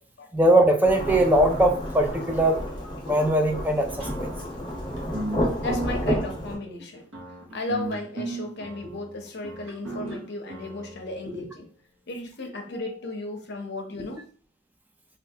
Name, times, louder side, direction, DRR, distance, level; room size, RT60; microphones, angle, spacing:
voice 1, 0.3-2.6 3.1-3.9 4.2-4.3, right 1 dB, 10° right, 4 dB, 0.3 m, -20 dB
Thunderstorm / Rain, 0.8-6.5, equal, 25° left, 0.9 m, -30 dB
sound 1, 4.0-11.4, right 2 dB, 75° right, 0.8 m, -36 dB
voice 2, 5.6-7.0 7.5-11.7 12.1-14.2, left 2 dB, 60° left, 3 dB, 0.7 m, -34 dB
3.2 x 2.4 x 2.7 m, 0.42 s
head